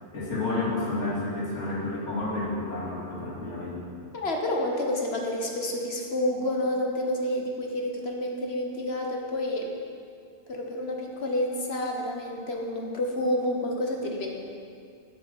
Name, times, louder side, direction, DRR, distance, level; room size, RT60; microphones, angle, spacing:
voice 1, 0.1-3.8, left 2 dB, 90° left, -6 dB, 2.6 m, -30 dB
voice 2, 4.1-9.7 10.5-14.3, left 1 dB, 60° left, 1 dB, 1.4 m, -29 dB
8.6 x 7.4 x 7.0 m, 2.3 s
omnidirectional pair, 1.2 m